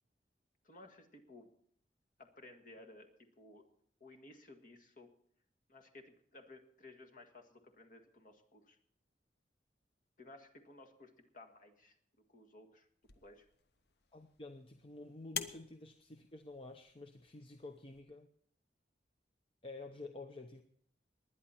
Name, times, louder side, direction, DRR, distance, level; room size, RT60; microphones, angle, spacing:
voice 1, 0.6-1.5 2.2-3.7 4.0-5.1 5.7-8.8 10.2-12.0 12.3-12.9 13.1-13.5, left 2 dB, 50° left, 4 dB, 1.8 m, -57 dB
sound 1, 13.0-18.0, left 7 dB, 65° left, 0.9 m, -49 dB
voice 2, 14.1-18.3 19.6-20.6, left 2 dB, 30° left, 6 dB, 0.7 m, -50 dB
20.5 x 10.0 x 4.4 m, 0.65 s
head